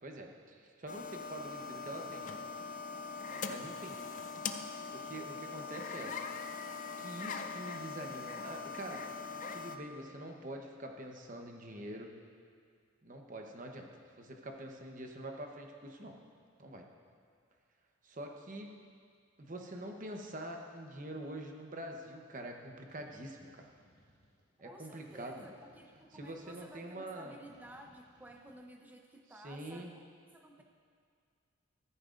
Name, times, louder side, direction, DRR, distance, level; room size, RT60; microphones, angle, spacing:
voice 1, 0.0-2.4 3.5-4.0 4.9-6.2 7.0-9.1 9.5-12.1 13.0-13.9 14.2-16.1 16.6-16.9 18.0-18.7 19.4-23.7 24.6-25.5 26.1-27.4 29.3-29.9, right 1 dB, 40° right, 2 dB, 0.9 m, -45 dB
sound 1, 0.9-9.8, left 4 dB, 35° left, 0.4 m, -42 dB
sound 2, 22.9-24.4 25.0-26.8 27.4-28.5, equal, 85° right, 3.4 m, -66 dB
voice 2, 24.6-30.0 30.3-30.6, right 1 dB, 10° right, 3 dB, 0.6 m, -54 dB
14.0 x 14.0 x 2.5 m, 2.1 s
head